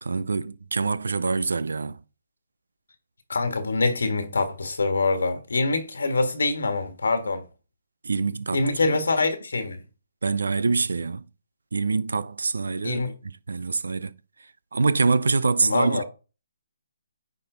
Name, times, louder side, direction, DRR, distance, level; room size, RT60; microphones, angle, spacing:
voice 1, 0.0-2.0 8.0-9.0 10.2-11.3 11.7-14.1 14.7-16.0, right 4 dB, 75° right, 0.6 m, -25 dB
voice 2, 3.3-7.4 8.5-9.8 12.8-13.1 15.6-16.0, left 3 dB, 75° left, 1.5 m, -25 dB
9.4 x 3.7 x 3.8 m
figure-of-eight pair, 145°, 0 cm